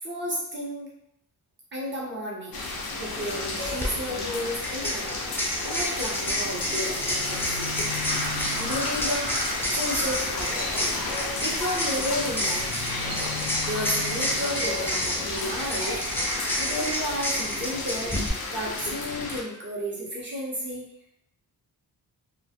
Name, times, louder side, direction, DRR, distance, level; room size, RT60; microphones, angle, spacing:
voice 1, 0.0-0.9 1.7-2.6 3.0-5.3 5.6-7.5 8.6-10.7 11.4-13.1 13.6-16.0 16.6-18.1 18.5-20.9, equal, 30° right, -4 dB, 0.9 m, -32 dB
sound 1, 2.5-19.4, left 3 dB, 65° left, 0.6 m, -32 dB
sound 2, 3.6-3.9 4.6-18.3, equal, 5° left, 0.4 m, -30 dB
Crow, 6.9-16.0, left 1 dB, 70° right, 0.6 m, -37 dB
2.3 x 2.0 x 2.7 m, 0.75 s
cardioid pair, 90°, 38 cm